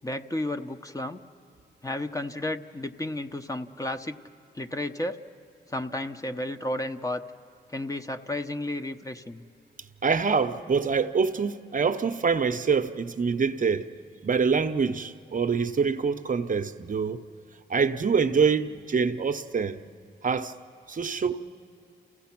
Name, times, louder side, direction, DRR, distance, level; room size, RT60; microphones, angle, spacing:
voice 1, 0.0-1.2 1.8-4.2 4.5-5.2 5.7-7.2 7.7-9.4, left 1 dB, 20° left, 0.8 m, -32 dB
voice 2, 10.0-13.9 14.2-17.2 17.7-19.8 20.2-20.5 20.9-21.4, right 5 dB, 45° right, 0.8 m, -25 dB
28.5 x 16.0 x 5.9 m
cardioid pair, 55°, 18 cm